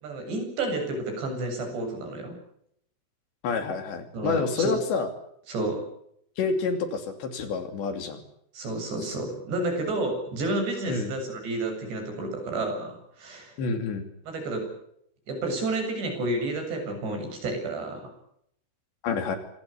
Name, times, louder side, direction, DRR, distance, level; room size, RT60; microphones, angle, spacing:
voice 1, 0.0-2.4 4.1-4.7 5.5-5.8 8.5-13.5 14.2-14.7 15.3-18.1, right 2 dB, 60° right, 4 dB, 9.8 m, -30 dB
voice 2, 3.4-5.1 6.4-8.2 10.9-11.1 13.6-14.1 19.0-19.4, left 4 dB, 65° left, 8 dB, 4.8 m, -28 dB
27.0 x 19.5 x 8.6 m, 0.71 s
omnidirectional pair, 5.7 m